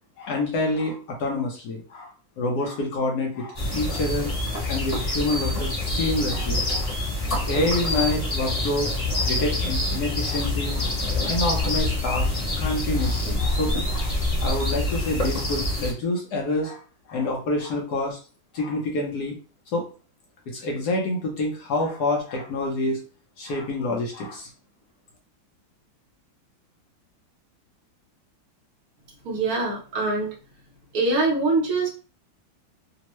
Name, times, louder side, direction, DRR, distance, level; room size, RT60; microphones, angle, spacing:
voice 1, 0.2-4.3 4.7-6.9 7.4-10.9 11.2-14.1 14.4-16.8 17.1-18.2 18.5-19.4 19.7-19.8 20.5-23.0 23.4-24.5, left 2 dB, 65° left, 0 dB, 1.1 m, -27 dB
sound 1, 3.5-15.9, left 2 dB, 25° left, 1.0 m, -26 dB
voice 2, 29.2-30.3 30.9-31.9, right 3 dB, 60° right, -3 dB, 1.0 m, -23 dB
3.5 x 2.0 x 3.0 m, 0.36 s
omnidirectional pair, 2.2 m